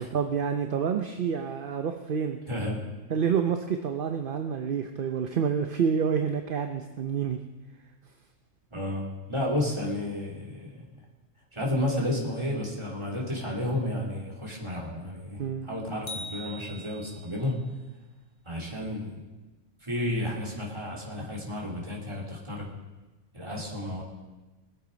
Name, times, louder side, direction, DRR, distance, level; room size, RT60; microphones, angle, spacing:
voice 1, 0.0-2.4 3.1-7.4 15.4-15.7, right 7 dB, 50° right, 5 dB, 0.8 m, -28 dB
voice 2, 2.5-2.8 8.7-10.9 11.5-17.6 18.4-19.2 19.8-22.7 23.3-24.0, left 1 dB, 20° right, -3 dB, 2.9 m, -32 dB
sound 1, 16.1-17.5, equal, 60° left, 2.3 m, -41 dB
21.0 x 8.2 x 5.2 m, 1.1 s
omnidirectional pair, 1.4 m